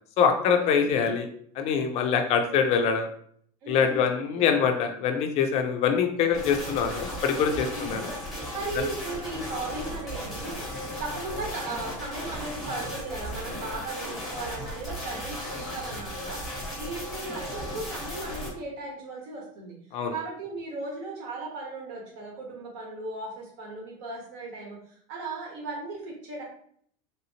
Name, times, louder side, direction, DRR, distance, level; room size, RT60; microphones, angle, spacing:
voice 1, 0.2-1.3 1.6-3.1 3.7-8.1 8.8-8.9 19.9-20.1, left 6 dB, 35° left, 5 dB, 0.4 m, -24 dB
voice 2, 0.8-1.1 3.6-4.5 5.7-5.8 6.2-6.7 7.7-8.3 8.5-10.7 11.0-19.7 20.1-26.4, right 2 dB, 55° right, -1 dB, 1.3 m, -37 dB
sound 1, 6.3-18.5, equal, ahead, 1.0 m, -36 dB
3.3 x 2.8 x 2.8 m, 0.62 s
cardioid pair, 165°, 18 cm